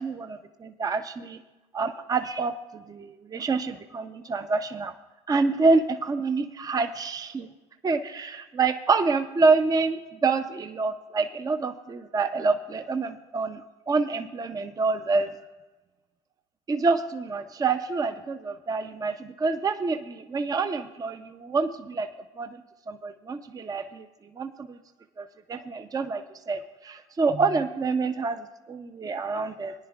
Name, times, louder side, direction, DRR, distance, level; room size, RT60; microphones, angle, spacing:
voice 1, 0.0-1.4 1.7-4.9 5.3-7.5 7.8-13.6 13.9-15.4 16.7-22.1 22.4-22.6 22.9-24.1 24.3-24.8 25.2-29.7, right 4 dB, 25° right, 8 dB, 0.7 m, -27 dB
19.5 x 10.0 x 2.4 m, 1.1 s
hypercardioid pair, 75°, 15 cm